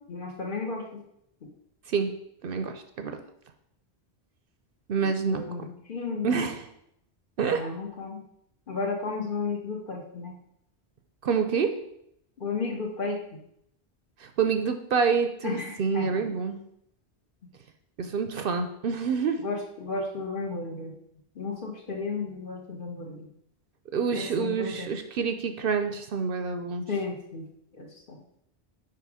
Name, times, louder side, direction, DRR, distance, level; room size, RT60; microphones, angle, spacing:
voice 1, 0.1-1.0 5.0-5.6 5.9-6.3 7.5-8.2 8.7-10.4 12.4-13.4 15.4-16.2 19.4-20.9 21.4-23.3 24.1-24.9 26.9-27.5 27.8-28.2, left 4 dB, 50° left, 1 dB, 1.2 m, -33 dB
voice 2, 2.4-3.2 4.9-5.7 6.2-6.7 7.4-7.6 11.2-11.7 14.2-16.6 18.0-19.4 23.9-26.9, right 5 dB, 60° right, 7 dB, 0.7 m, -27 dB
5.8 x 4.7 x 4.8 m, 0.75 s
omnidirectional pair, 1.1 m